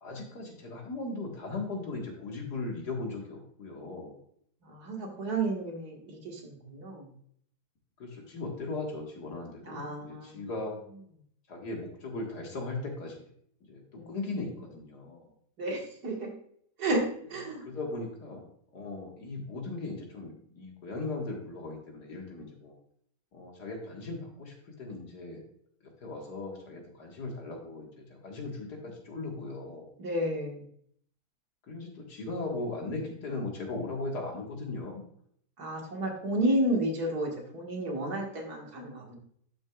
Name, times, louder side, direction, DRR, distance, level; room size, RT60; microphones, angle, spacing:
voice 1, 0.0-4.2 8.0-10.8 11.5-13.2 13.7-15.3 17.7-18.4 18.7-22.8 23.3-25.4 26.0-29.9 31.7-35.0, left 3 dB, 70° left, 0 dB, 2.2 m, -38 dB
voice 2, 4.7-7.1 9.7-10.4 14.0-14.2 15.6-16.3 16.8-17.0 17.3-17.6 30.0-30.6 35.6-39.2, right 1 dB, 65° right, 0 dB, 2.2 m, -31 dB
11.5 x 6.2 x 2.4 m, 0.64 s
omnidirectional pair, 1.8 m